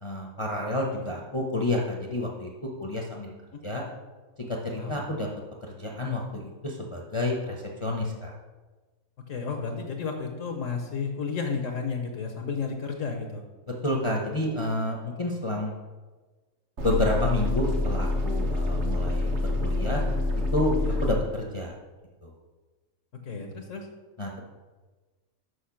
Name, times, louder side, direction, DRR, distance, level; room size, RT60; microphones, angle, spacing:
voice 1, 0.0-2.5 2.8-3.3 3.6-3.8 4.4-5.3 5.6-8.3 13.8-15.7 16.8-20.0 20.5-20.7 21.0-21.7 22.2-22.3 24.2-24.4, left 1 dB, 25° left, -1 dB, 0.8 m, -29 dB
voice 2, 9.3-13.4 20.8-20.9 23.2-23.9, left 5 dB, 65° left, 3 dB, 1.2 m, -32 dB
sound 1, 16.8-21.2, left 2 dB, 55° right, 1.3 m, -27 dB
6.4 x 5.6 x 5.7 m, 1.3 s
omnidirectional pair, 1.5 m